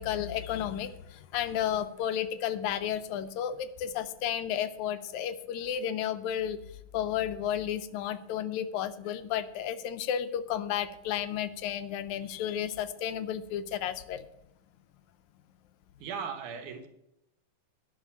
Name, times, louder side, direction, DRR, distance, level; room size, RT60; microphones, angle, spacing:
voice 1, 0.0-6.6 6.9-14.3, left 10 dB, 80° left, 12 dB, 1.9 m, -32 dB
voice 2, 16.0-16.9, right 6 dB, 80° right, 7 dB, 2.5 m, -37 dB
10.5 x 5.8 x 8.3 m, 0.84 s
omnidirectional pair, 3.5 m